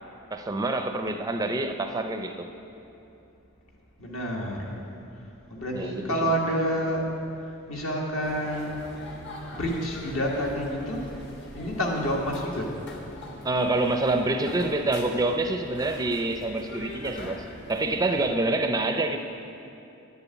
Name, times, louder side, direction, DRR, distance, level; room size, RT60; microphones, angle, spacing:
voice 1, 0.3-2.5 5.7-6.3 13.4-19.2, right 2 dB, 15° right, 6 dB, 0.4 m, -27 dB
voice 2, 4.0-4.8 5.5-7.1 7.7-8.8 9.5-11.0 11.5-12.7, equal, 70° left, -2 dB, 1.9 m, -28 dB
sound 1, 8.2-18.3, left 1 dB, 55° left, 1.5 m, -43 dB
10.5 x 6.9 x 8.2 m, 2.8 s
head